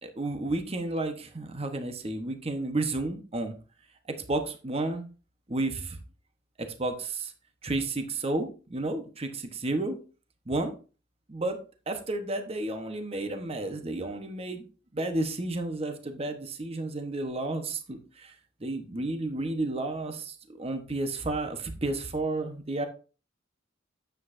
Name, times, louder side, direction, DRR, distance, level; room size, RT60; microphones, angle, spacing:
voice 1, 0.0-3.5 4.1-5.1 5.5-6.0 6.6-7.3 7.6-10.0 10.5-10.7 11.3-11.6 11.9-14.6 14.9-18.3 18.6-22.9, right 2 dB, 30° right, 6 dB, 1.0 m, -32 dB
9.3 x 7.6 x 2.6 m, 0.35 s
head